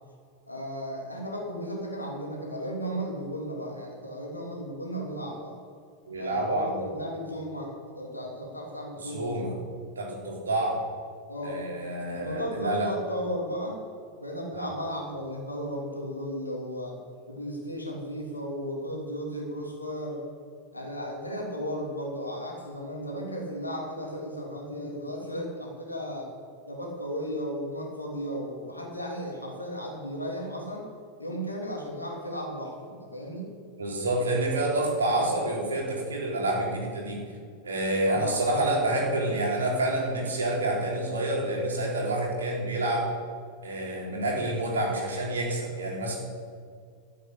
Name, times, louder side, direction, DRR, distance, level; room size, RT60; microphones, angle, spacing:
voice 1, 0.5-5.5 6.1-9.6 11.3-11.6 12.1-13.8 14.2-17.0 17.3-20.2 20.7-26.3 26.7-30.9 31.2-33.5 38.1-38.3, equal, 85° left, -1 dB, 3.2 m, -35 dB
voice 2, 6.1-6.9 9.0-9.5 10.0-10.8 11.4-12.9 14.5-14.7 33.7-37.2 37.6-43.1 43.6-46.2, right 1 dB, 70° right, -2 dB, 4.0 m, -28 dB
13.0 x 8.9 x 8.4 m, 2.2 s
figure-of-eight pair, 90°, 0 cm